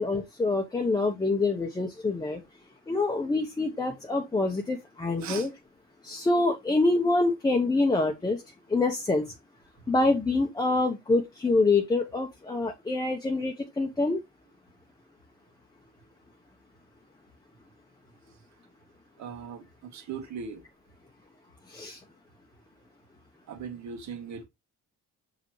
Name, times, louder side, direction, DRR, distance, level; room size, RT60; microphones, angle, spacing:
voice 1, 0.0-2.4 2.9-5.5 6.0-8.4 8.7-9.3 9.9-14.2 21.7-22.0, left 3 dB, 15° left, 1.0 m, -26 dB
voice 2, 19.2-20.6 23.5-24.5, right 6 dB, 60° right, 2.0 m, -39 dB
6.8 x 5.4 x 3.1 m
cardioid pair, 145°, 31 cm